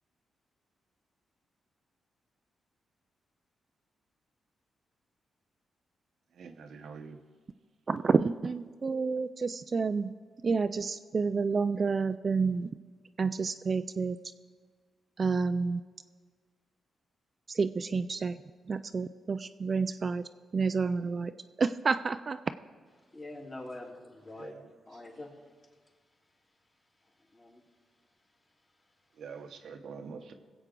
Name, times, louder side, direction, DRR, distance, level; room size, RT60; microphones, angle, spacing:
voice 1, 6.3-7.2 24.4-24.7 29.1-30.3, right 5 dB, 75° right, 0.9 m, -45 dB
voice 2, 7.9-10.1 10.4-12.7 13.2-14.2 15.2-15.8 17.5-18.4 18.7-20.3 20.5-21.3 21.6-22.4, right 4 dB, 45° right, 0.4 m, -29 dB
voice 3, 23.0-24.6 24.9-26.0 27.0-27.6 28.2-28.3 28.7-28.8, left 2 dB, 35° left, 3.1 m, -46 dB
21.0 x 8.0 x 3.8 m
cardioid pair, 80°, 0 cm